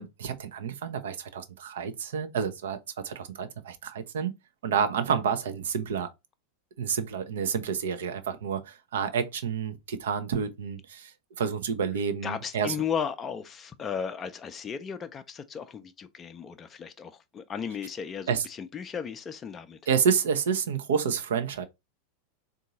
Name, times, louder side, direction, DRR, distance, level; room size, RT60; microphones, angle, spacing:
voice 1, 0.0-4.3 4.6-6.1 6.8-11.1 11.4-12.7 18.3-18.4 19.9-21.6, right 7 dB, 65° right, 0.7 m, -29 dB
voice 2, 12.2-19.8, left 7 dB, 25° left, 0.5 m, -35 dB
3.7 x 2.6 x 4.0 m
figure-of-eight pair, 90°, 0 cm